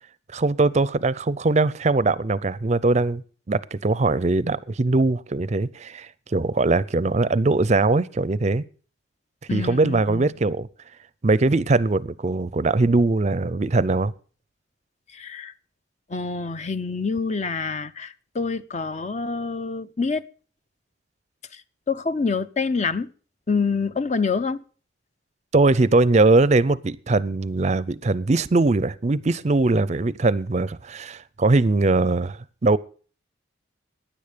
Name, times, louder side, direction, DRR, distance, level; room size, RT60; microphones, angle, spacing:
voice 1, 0.3-3.2 3.5-8.6 9.5-10.7 11.2-14.1 25.5-32.8, right 3 dB, 40° right, 0.5 m, -21 dB
voice 2, 9.5-10.4 15.1-15.5 16.1-20.2 21.5-21.6 21.9-23.1 23.5-24.6, left 4 dB, 40° left, 0.6 m, -26 dB
15.5 x 10.0 x 5.1 m
head